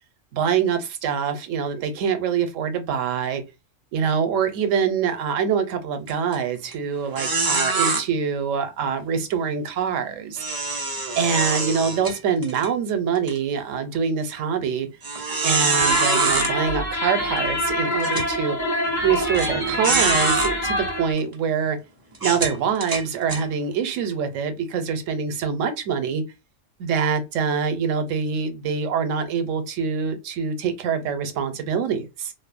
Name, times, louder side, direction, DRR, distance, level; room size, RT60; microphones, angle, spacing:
voice 1, 0.3-3.4 3.9-10.4 11.2-14.9 15.4-18.6 19.0-21.8 22.2-26.2 26.8-32.3, right 6 dB, 90° right, 1.0 m, -25 dB
sound 1, 6.1-6.3 6.7-6.8 7.1-8.0 10.4-12.7 13.1-13.3 13.9-14.0 15.0-16.5 17.4-17.5 18.0-18.3 19.3-19.5 19.8-20.5 21.2-21.3 22.1-23.4, right 3 dB, 30° right, 0.4 m, -24 dB
sound 2, 15.8-21.1, left 1 dB, 40° left, 1.0 m, -25 dB
2.7 x 2.0 x 2.4 m
omnidirectional pair, 1.3 m